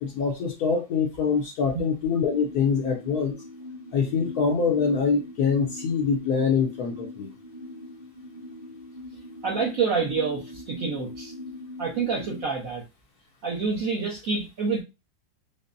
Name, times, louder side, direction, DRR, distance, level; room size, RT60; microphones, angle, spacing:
voice 1, 0.0-3.3 3.9-7.3, left 5 dB, 70° left, 0 dB, 1.0 m, -24 dB
sound 1, 2.2-12.4, left 2 dB, 20° right, 0.7 m, -41 dB
voice 2, 9.4-11.3 11.8-12.8 13.4-14.8, right 5 dB, 60° right, -4 dB, 1.2 m, -27 dB
5.2 x 2.1 x 2.5 m, 0.25 s
omnidirectional pair, 1.9 m